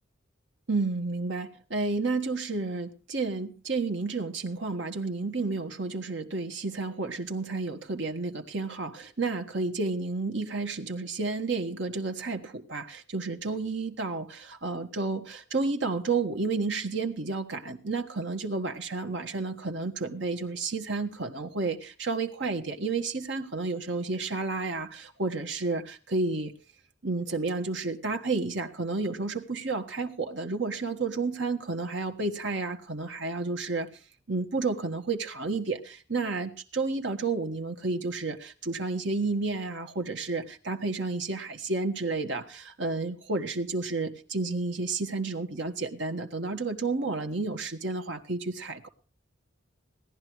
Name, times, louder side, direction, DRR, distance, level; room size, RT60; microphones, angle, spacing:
voice 1, 0.7-26.5 27.0-33.9 34.3-48.9, right 3 dB, 60° right, 4 dB, 1.6 m, -31 dB
17.5 x 11.0 x 4.7 m, 0.36 s
head